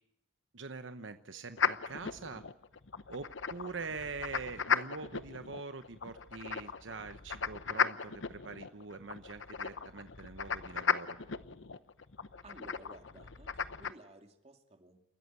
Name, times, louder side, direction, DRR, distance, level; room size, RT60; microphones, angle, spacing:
voice 1, 0.5-2.4 3.1-11.2, right 4 dB, 80° right, 9 dB, 1.0 m, -44 dB
sound 1, 1.6-13.9, left 6 dB, 80° left, 0.9 m, -36 dB
voice 2, 12.4-15.1, right 1 dB, 35° right, 5 dB, 2.5 m, -55 dB
29.5 x 14.0 x 9.5 m, 0.83 s
head